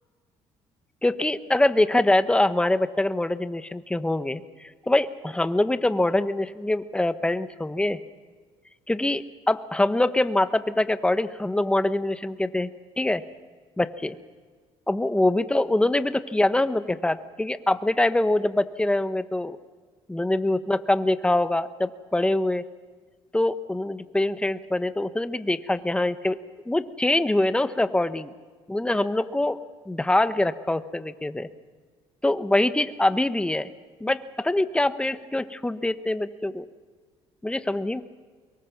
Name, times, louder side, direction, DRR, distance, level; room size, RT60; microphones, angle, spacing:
voice 1, 1.0-8.0 8.9-12.7 13.0-13.2 13.8-14.1 14.9-19.6 20.1-22.6 23.3-26.4 26.6-28.3 28.7-29.6 29.9-31.5 32.2-33.7 34.0-36.6 37.4-38.0, left 1 dB, 10° left, 12 dB, 1.1 m, -24 dB
24.5 x 23.0 x 6.1 m, 1.5 s
cardioid pair, 95°, 12 cm